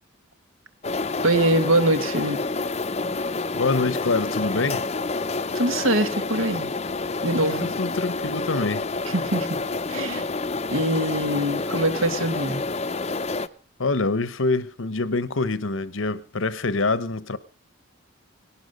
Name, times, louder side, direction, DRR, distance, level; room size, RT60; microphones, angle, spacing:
sound 1, 0.8-13.5, left 3 dB, 30° left, 0.6 m, -28 dB
voice 1, 1.2-2.4 5.5-6.7 7.2-7.7 9.1-9.6 9.9-10.3 10.7-12.6, right 1 dB, 80° right, 1.7 m, -23 dB
voice 2, 3.5-4.8 7.6-8.9 13.8-17.4, left 3 dB, 70° left, 1.0 m, -25 dB
18.0 x 11.5 x 5.3 m
head